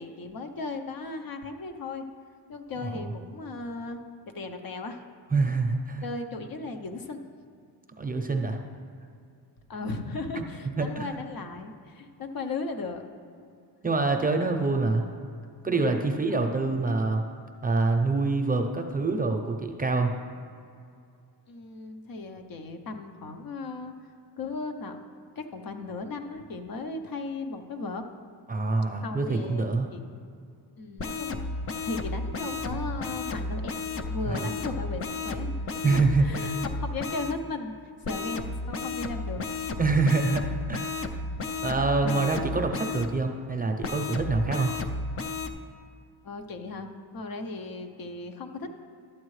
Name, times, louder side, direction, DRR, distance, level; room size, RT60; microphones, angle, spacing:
voice 1, 0.0-2.1 2.5-4.0 4.3-5.0 6.0-7.2 9.7-13.0 13.4-13.5 16.4-16.5 21.5-23.9 24.4-25.0 25.4-28.0 29.0-30.1 30.8-31.5 31.8-33.8 34.1-37.8 38.1-39.5 42.0-42.3 46.2-46.9 47.1-48.7, left 3 dB, 55° left, 6 dB, 0.8 m, -36 dB
voice 2, 5.3-6.0 8.0-8.6 10.4-10.5 10.8-11.1 13.8-15.1 15.6-17.2 17.6-20.1 28.5-29.9 34.3-34.5 35.8-36.6 39.8-41.1 41.6-44.7, right 3 dB, 20° right, 3 dB, 0.6 m, -26 dB
sound 1, 31.0-37.3 38.0-43.1 43.8-45.5, left 3 dB, 35° left, 0.5 m, -33 dB
12.5 x 8.5 x 3.2 m, 2.4 s
cardioid pair, 125°, 41 cm